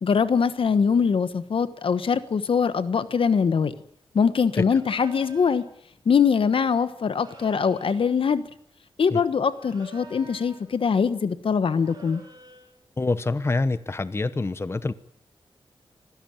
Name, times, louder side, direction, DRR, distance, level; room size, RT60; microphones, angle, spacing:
voice 1, 0.0-3.7 4.1-5.6 6.0-8.4 9.0-12.2, left 6 dB, 70° left, 1.3 m, -22 dB
sound 1, 4.8-5.7 7.1-8.1 9.5-10.7 11.7-12.7, right 2 dB, 45° right, 7.9 m, -48 dB
voice 2, 13.0-14.9, left 3 dB, 25° left, 0.9 m, -26 dB
25.0 x 16.5 x 8.9 m
wide cardioid pair, 115°, 9 cm